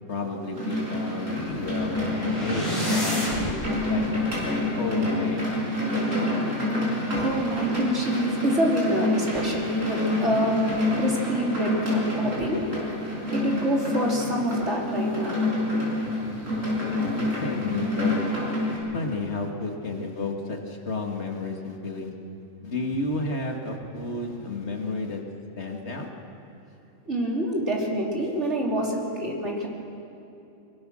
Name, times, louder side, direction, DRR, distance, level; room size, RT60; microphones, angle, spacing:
voice 1, 0.1-3.6 3.9-5.5 17.1-18.2 18.9-22.1 22.6-25.2 25.6-26.1, left 3 dB, 55° left, 2 dB, 2.3 m, -32 dB
sound 1, 0.5-18.8, left 1 dB, 80° right, 5.6 m, -28 dB
sound 2, 1.4-3.6, left 1 dB, 25° left, 4.7 m, -31 dB
voice 2, 7.1-10.6 11.0-12.6 13.3-15.4 27.1-29.7, equal, 60° right, -2 dB, 3.9 m, -26 dB
23.5 x 22.0 x 6.4 m, 2.8 s
omnidirectional pair, 1.4 m